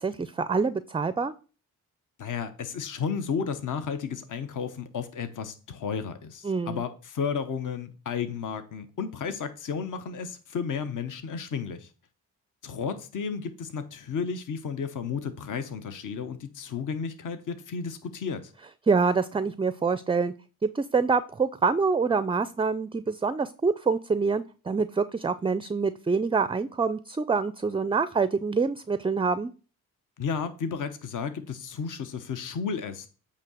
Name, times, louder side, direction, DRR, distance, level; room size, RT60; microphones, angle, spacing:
voice 1, 0.0-1.3 6.4-6.8 18.9-20.3 20.6-29.5, right 4 dB, 15° right, 0.4 m, -26 dB
voice 2, 2.2-11.9 12.6-18.5 30.2-33.1, left 6 dB, 60° left, 1.0 m, -33 dB
8.5 x 2.8 x 6.2 m
cardioid pair, 60°, 36 cm